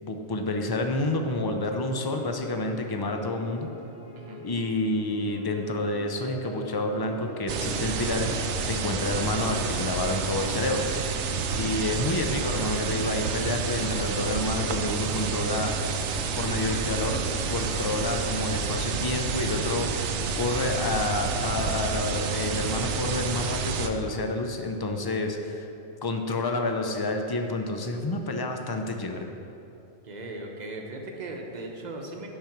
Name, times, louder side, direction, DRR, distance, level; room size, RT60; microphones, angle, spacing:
voice 1, 0.0-3.7 4.4-8.3 8.6-10.9 11.5-15.7 16.3-17.2 17.5-20.0 20.4-25.7 26.0-29.3, left 2 dB, 30° left, 4 dB, 0.4 m, -29 dB
sound 1, 2.0-9.7, left 1 dB, 70° left, 1.7 m, -43 dB
sound 2, 7.5-23.9, right 5 dB, 80° right, 0.9 m, -29 dB
voice 2, 11.9-12.2 30.0-32.3, right 2 dB, 40° right, 1 dB, 1.0 m, -38 dB
8.7 x 5.2 x 5.9 m, 2.8 s
omnidirectional pair, 1.2 m